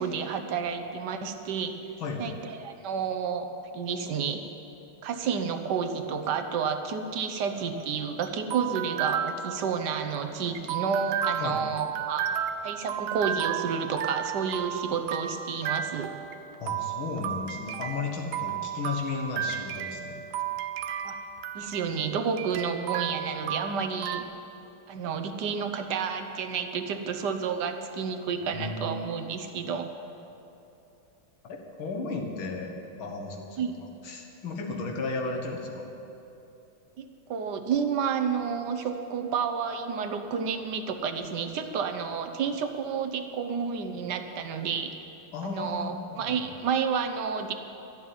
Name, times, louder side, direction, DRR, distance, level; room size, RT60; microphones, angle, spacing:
voice 1, 0.0-1.8 2.2-3.5 3.7-4.4 5.0-12.3 12.6-16.1 21.0-21.2 21.5-24.3 24.9-29.9 33.6-33.7 37.0-44.9 45.4-47.5, right 6 dB, 65° right, 7 dB, 1.3 m, -30 dB
sound 1, 7.5-24.2, right 9 dB, 80° right, 1.4 m, -33 dB
voice 2, 16.6-20.2 28.4-28.9 31.4-32.7 33.0-35.9 45.3-46.5, left 4 dB, 75° left, 1 dB, 2.3 m, -34 dB
13.0 x 7.4 x 9.4 m, 2.9 s
omnidirectional pair, 2.2 m